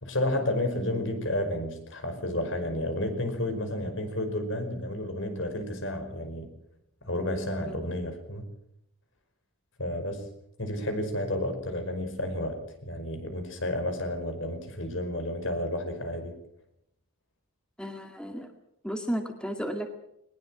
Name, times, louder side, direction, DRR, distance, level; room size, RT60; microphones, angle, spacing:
voice 1, 0.0-6.5 7.0-8.5 9.8-10.3 10.6-16.3, left 1 dB, 65° left, 7 dB, 5.3 m, -31 dB
voice 2, 17.8-18.5 18.8-19.9, equal, 5° left, 4 dB, 2.0 m, -33 dB
21.5 x 20.5 x 7.6 m, 0.79 s
head